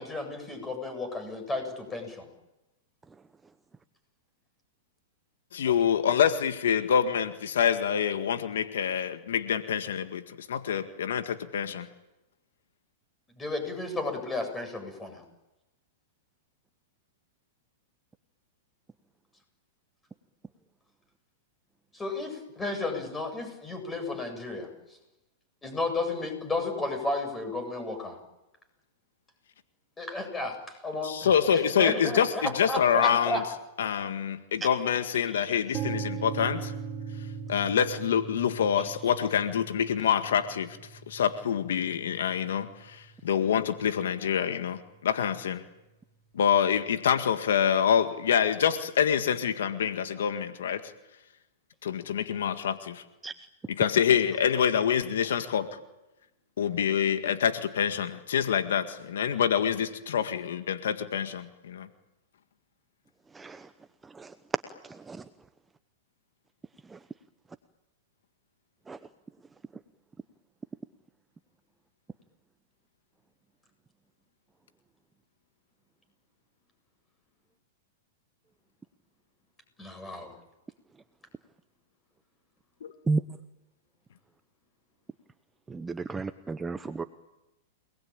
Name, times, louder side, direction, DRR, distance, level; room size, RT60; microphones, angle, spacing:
voice 1, 0.0-2.3 13.4-15.2 21.9-24.7 25.6-28.2 30.0-33.4 79.8-80.3, left 2 dB, 10° left, 7 dB, 7.9 m, -33 dB
voice 2, 5.5-11.9 31.0-33.4 33.8-36.7 37.5-40.8 41.1-45.6 46.3-50.8 51.8-53.0 53.7-55.7 56.6-61.9 82.8-82.9, left 8 dB, 80° left, 9 dB, 1.8 m, -26 dB
sound 1, 35.7-43.6, right 6 dB, 25° right, 3.3 m, -39 dB
voice 3, 63.3-63.7 64.1-64.3 65.1-65.2 68.9-69.0 83.1-83.2 85.7-87.0, right 4 dB, 10° right, 10 dB, 0.9 m, -32 dB
29.5 x 20.0 x 8.9 m, 0.99 s
hypercardioid pair, 130°, 0 cm